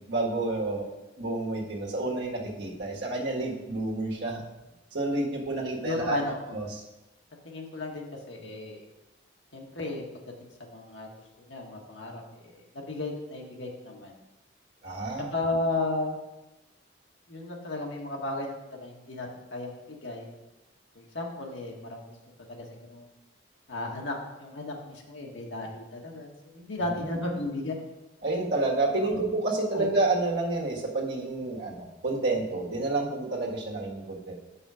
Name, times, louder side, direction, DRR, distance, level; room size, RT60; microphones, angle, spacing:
voice 1, 0.1-0.8 1.2-4.4 4.9-6.2 6.5-6.7 14.8-15.3 27.0-27.3 28.2-34.4, right 2 dB, 60° right, -2 dB, 1.6 m, -29 dB
voice 2, 5.8-6.5 7.4-8.8 9.5-10.0 10.4-11.1 11.4-12.2 12.5-14.1 15.3-16.2 17.3-20.3 20.9-22.0 22.5-23.1 23.7-27.7 29.0-29.2 29.7-29.9, left 2 dB, 75° left, 0 dB, 1.5 m, -34 dB
7.1 x 5.5 x 4.9 m, 1.0 s
head